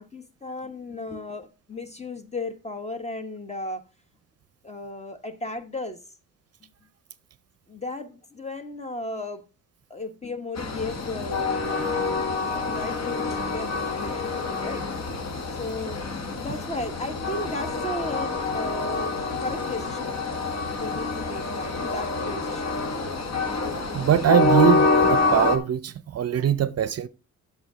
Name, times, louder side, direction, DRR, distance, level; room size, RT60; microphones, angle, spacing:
voice 1, 0.0-3.8 4.6-6.0 7.7-9.4 9.9-12.1 12.5-14.9 15.5-16.1 16.4-19.1 19.4-20.2 20.8-22.8, left 2 dB, 20° left, 1.2 m, -35 dB
Train, 10.6-25.6, left 3 dB, 55° left, 1.4 m, -26 dB
voice 2, 23.9-27.1, right 10 dB, 50° right, 0.6 m, -22 dB
8.0 x 6.6 x 4.9 m
cardioid pair, 95°, 32 cm